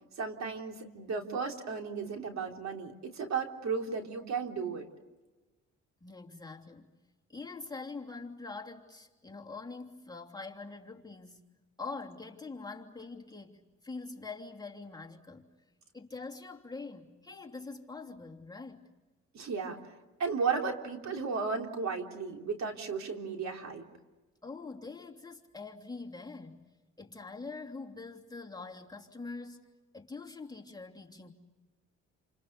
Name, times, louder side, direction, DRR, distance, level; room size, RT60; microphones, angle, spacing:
voice 1, 0.2-4.9 19.3-19.8 20.2-23.8, right 5 dB, 65° right, 3 dB, 3.7 m, -34 dB
voice 2, 6.0-6.9 7.3-11.5 11.8-15.5 15.9-18.9 24.4-29.6 29.9-31.3, left 3 dB, 15° left, 0 dB, 3.0 m, -44 dB
29.0 x 28.0 x 6.9 m, 1.2 s
cardioid pair, 90°, 30 cm